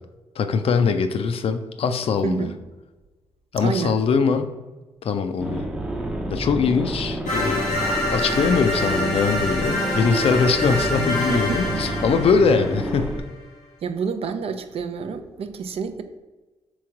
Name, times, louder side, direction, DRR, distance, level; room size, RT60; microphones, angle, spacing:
voice 1, 0.4-2.5 3.5-4.5 5.0-5.6 6.3-7.6 8.1-13.2, left 5 dB, 55° left, 8 dB, 0.4 m, -22 dB
voice 2, 2.2-2.6 3.6-4.0 11.3-11.8 13.8-16.0, right 5 dB, 60° right, 8 dB, 0.4 m, -28 dB
sound 1, 5.4-13.2, right 1 dB, 5° right, 0.6 m, -29 dB
sound 2, 7.3-13.2, left 1 dB, 90° left, 1.1 m, -26 dB
3.4 x 3.1 x 4.7 m, 1.2 s
supercardioid pair, 55°, 12 cm